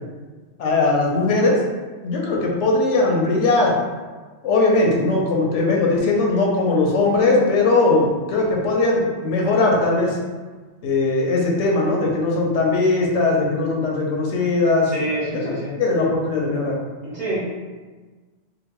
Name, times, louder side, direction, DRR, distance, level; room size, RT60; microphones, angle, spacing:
voice 1, 0.6-1.6 2.0-3.7 4.4-10.2 10.8-14.9 15.3-16.7, left 3 dB, 90° left, -1 dB, 0.9 m, -19 dB
voice 2, 14.8-15.8 17.0-17.4, right 1 dB, 40° right, -10 dB, 1.0 m, -27 dB
2.8 x 2.0 x 3.0 m, 1.4 s
omnidirectional pair, 1.2 m